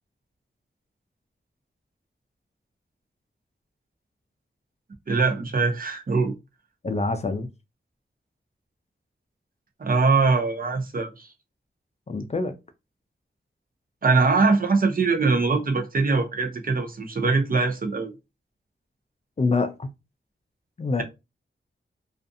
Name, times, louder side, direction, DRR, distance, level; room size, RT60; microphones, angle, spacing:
voice 1, 5.1-6.3 9.8-11.3 14.0-18.1, right 4 dB, 45° right, 0.6 m, -22 dB
voice 2, 6.8-7.5 12.1-12.6 19.4-19.9 20.8-21.0, left 3 dB, 35° left, 0.4 m, -25 dB
2.4 x 2.4 x 2.5 m
wide cardioid pair, 80°, 20 cm